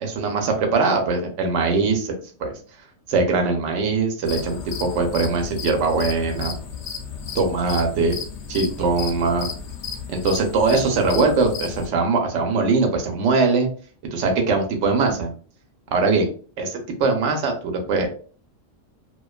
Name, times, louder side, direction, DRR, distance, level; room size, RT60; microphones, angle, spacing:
voice 1, 0.0-2.1 2.4-2.5 3.1-6.5 7.3-8.1 8.5-9.5 10.1-13.7 14.1-15.3 15.9-16.3 16.6-18.1, right 4 dB, 70° right, 4 dB, 0.9 m, -21 dB
sound 1, 4.2-11.9, left 6 dB, 70° left, 0.9 m, -33 dB
2.4 x 2.2 x 2.3 m, 0.41 s
omnidirectional pair, 1.3 m